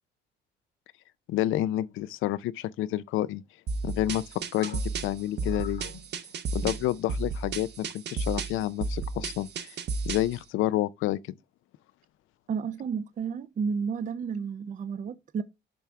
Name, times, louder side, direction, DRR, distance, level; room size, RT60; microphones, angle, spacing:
voice 1, 1.3-3.4 3.8-4.2 4.5-5.9 6.5-9.8 10.1-11.2, left 14 dB, 85° left, 0.5 m, -29 dB
sound 1, 3.7-10.4, right 4 dB, 60° right, 0.8 m, -33 dB
sound 2, 4.6-7.4 7.7-8.0 8.6-9.1, left 7 dB, 65° left, 1.4 m, -48 dB
voice 2, 12.5-15.4, right 6 dB, 40° right, 0.5 m, -32 dB
10.0 x 3.4 x 3.5 m
cardioid pair, 90°, 20 cm